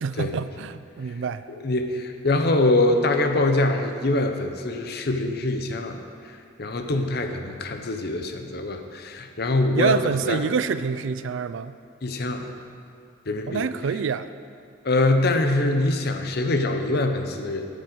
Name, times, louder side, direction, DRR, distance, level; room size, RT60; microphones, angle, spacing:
voice 1, 0.0-1.4 9.7-11.8 13.5-14.3, right 6 dB, 75° right, 13 dB, 0.4 m, -26 dB
voice 2, 1.5-6.0 6.2-10.4 12.0-12.5 13.3-13.7 14.8-17.6, left 2 dB, 55° left, 6 dB, 0.7 m, -24 dB
8.8 x 5.3 x 7.9 m, 2.4 s
head